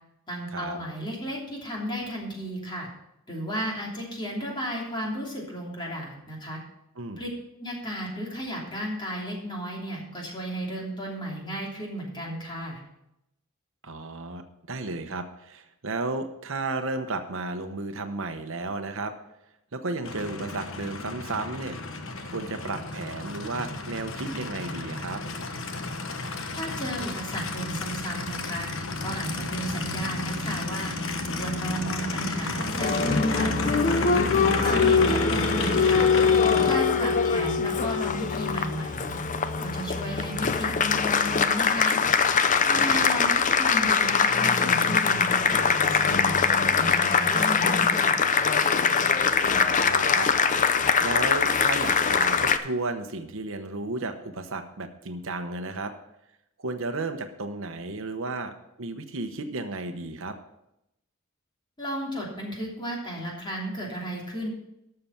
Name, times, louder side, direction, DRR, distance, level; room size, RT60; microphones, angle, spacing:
voice 1, 0.3-2.9 3.3-6.6 7.2-7.3 7.6-12.8 26.5-28.7 29.0-31.0 31.4-33.7 34.1-36.1 36.6-39.2 39.6-42.0 42.7-46.4 46.7-48.2 61.8-64.5, equal, 20° left, -2 dB, 3.0 m, -33 dB
voice 2, 13.8-14.4 14.7-19.1 19.7-21.8 22.3-25.2 34.6-34.8 42.7-43.1 49.5-50.6 51.0-55.9 56.6-60.3, right 3 dB, 65° right, 7 dB, 0.9 m, -33 dB
Aircraft, 20.0-36.8, left 2 dB, 65° left, 1.2 m, -32 dB
Applause, 32.6-52.6, left 5 dB, 35° left, 0.6 m, -23 dB
12.5 x 6.8 x 5.8 m, 0.84 s
head